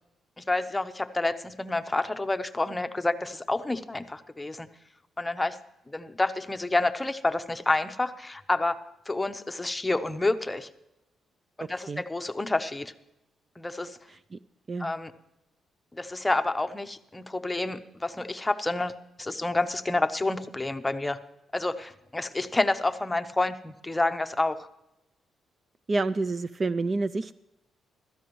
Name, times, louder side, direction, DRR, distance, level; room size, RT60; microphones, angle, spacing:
voice 1, 0.4-4.7 5.2-5.6 5.9-8.8 9.1-10.7 11.6-12.9 13.6-14.0 14.8-15.1 16.0-18.9 19.2-21.2 21.5-24.7, left 2 dB, 15° left, 9 dB, 0.8 m, -29 dB
voice 2, 14.1-14.4 14.7-14.9 25.9-27.3, right 3 dB, 30° right, 15 dB, 0.3 m, -29 dB
16.0 x 13.5 x 3.1 m, 0.89 s
cardioid pair, 110°, 0 cm